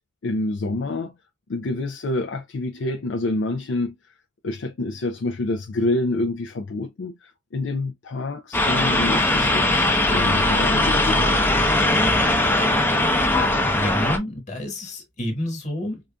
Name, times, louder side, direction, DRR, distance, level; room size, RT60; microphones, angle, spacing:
voice 1, 0.2-1.1 1.5-3.9 4.4-11.4, left 2 dB, 70° left, 0.5 m, -27 dB
sound 1, 8.5-14.2, left 1 dB, 10° left, 0.6 m, -20 dB
voice 2, 13.6-16.0, left 1 dB, 35° left, 1.5 m, -29 dB
4.8 x 2.5 x 2.2 m
head